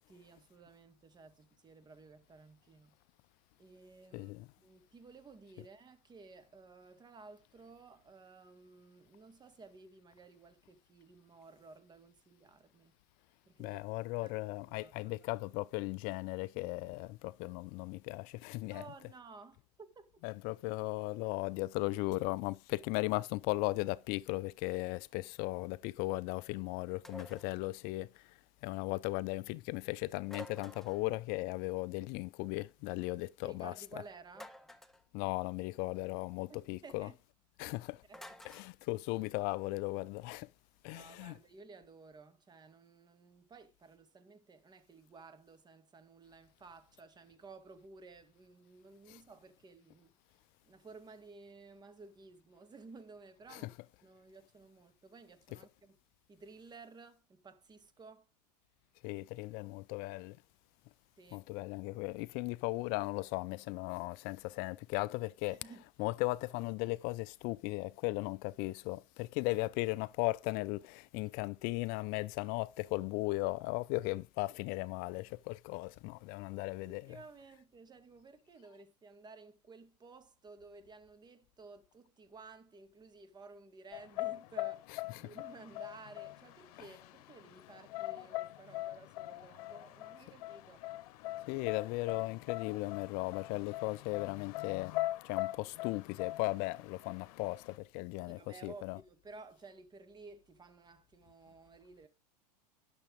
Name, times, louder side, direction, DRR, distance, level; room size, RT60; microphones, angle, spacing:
voice 1, 0.1-3.0 3.6-12.9 13.5-13.9 14.2-14.3 14.7-15.3 18.7-19.6 20.0-20.1 33.4-34.5 36.5-37.2 38.1-38.4 40.9-50.1 50.6-53.8 54.0-56.0 56.3-58.3 61.2-61.4 65.5-65.8 71.2-71.3 76.9-90.9 91.5-91.7 98.3-102.1, right 4 dB, 20° right, 2.1 m, -55 dB
voice 2, 4.1-4.5 13.6-18.8 20.2-33.7 35.1-37.1 37.6-38.0 38.4-40.5 40.8-41.4 49.1-49.2 53.5-53.7 59.0-60.4 61.3-65.6 66.0-77.2 85.1-85.2 91.5-94.9 95.2-99.0, left 21 dB, 45° left, 0.5 m, -37 dB
sound 1, 27.0-27.5 30.3-31.1 34.3-35.0 38.1-38.7, equal, ahead, 1.2 m, -50 dB
sound 2, 83.9-97.8, left 17 dB, 60° left, 1.1 m, -42 dB
11.5 x 7.0 x 5.1 m
hypercardioid pair, 105°, 21 cm